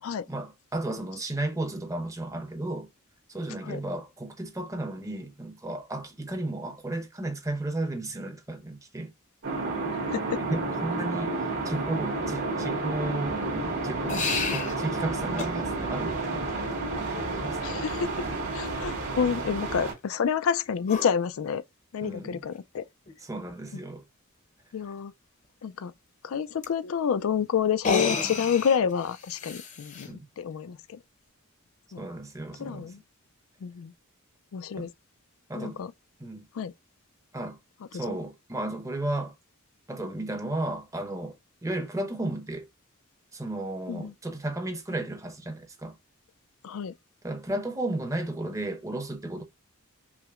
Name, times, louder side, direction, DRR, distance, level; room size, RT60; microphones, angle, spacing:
voice 1, 0.3-2.9 3.3-9.1 10.4-16.8 17.4-17.7 22.0-22.4 23.2-24.0 30.1-30.2 32.0-32.9 34.8-34.9 35.5-35.8 36.2-36.4 37.3-37.6 37.9-39.4 39.9-41.4 41.6-42.7 43.3-46.0 47.2-49.4, right 1 dB, 15° right, 0.7 m, -34 dB
sound 1, 9.4-19.9, right 3 dB, 70° right, 2.0 m, -31 dB
voice 2, 9.9-10.4 14.5-14.6 17.6-18.3 18.5-21.6 21.9-22.9 24.7-25.1 25.6-25.9 26.2-31.0 31.9-32.0 32.6-33.0 33.6-33.9 34.5-34.9 35.5-35.9 36.5-36.7 37.9-38.2 43.9-44.1 46.6-46.9, left 7 dB, 65° left, 0.3 m, -29 dB
sound 2, 14.1-14.8 15.4-15.5 17.6-17.7 20.9-21.1 22.5-22.6 23.1-23.2 23.5-23.6 26.6-26.7 27.7-30.1, left 4 dB, 35° left, 0.7 m, -31 dB
5.7 x 2.1 x 2.3 m
head